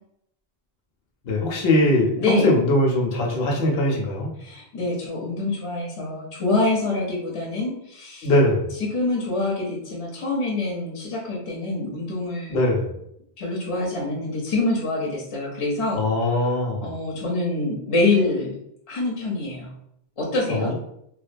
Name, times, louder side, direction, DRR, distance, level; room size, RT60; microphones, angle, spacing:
voice 1, 1.2-4.3 8.2-8.7 12.5-12.9 16.0-16.9 20.5-20.7, left 1 dB, 70° left, -1 dB, 0.8 m, -21 dB
voice 2, 2.2-2.5 4.4-8.3 8.8-12.6 13.4-16.5 16.8-18.6 18.9-19.7 20.2-20.7, left 2 dB, 40° left, -4 dB, 0.5 m, -26 dB
2.3 x 2.2 x 2.5 m, 0.75 s
omnidirectional pair, 1.0 m